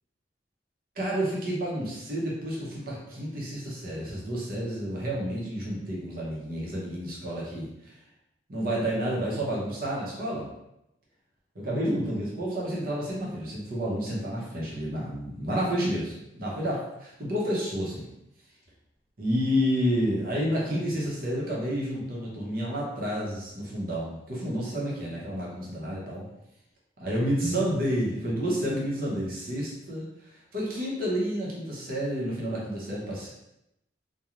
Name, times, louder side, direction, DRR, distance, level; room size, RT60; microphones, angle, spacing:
voice 1, 1.0-8.0 8.5-10.5 11.5-18.1 19.2-26.2 27.0-33.3, equal, 50° right, -4 dB, 0.8 m, -30 dB
2.4 x 2.2 x 3.0 m, 0.85 s
head